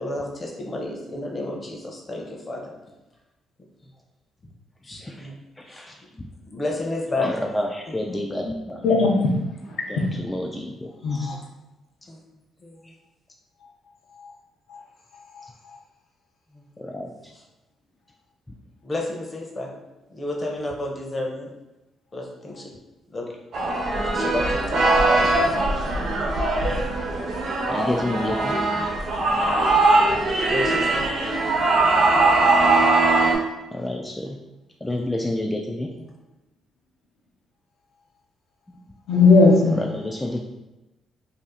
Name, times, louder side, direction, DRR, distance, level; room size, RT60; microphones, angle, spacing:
voice 1, 0.0-2.6 4.8-5.3 5.7-5.9 6.5-7.3 8.1-8.2 10.0-10.1 12.1-12.2 12.6-12.9 16.5-16.6 18.8-19.7 20.1-21.5 22.1-22.7 23.1-23.3 24.0-24.9 28.7-29.0 30.5-31.1, left 2 dB, 30° left, 0 dB, 0.8 m, -31 dB
voice 2, 5.6-6.3 7.2-8.9 9.9-11.4 12.8-12.9 16.8-17.3 26.6-26.9 27.7-28.5 30.1-30.2 32.7-32.9 33.7-34.4 34.8-35.9 38.7-38.8 39.7-40.4, left 1 dB, 10° left, 1 dB, 0.3 m, -30 dB
voice 3, 8.8-9.3 9.7-10.1 11.0-11.3 14.2-14.3 14.7-14.8 15.3-15.4 39.1-39.8, left 3 dB, 70° left, -1 dB, 0.7 m, -18 dB
sound 1, 23.5-33.3, right 2 dB, 65° right, 0.7 m, -20 dB
2.7 x 2.4 x 3.6 m, 1.0 s
cardioid pair, 90°, 0 cm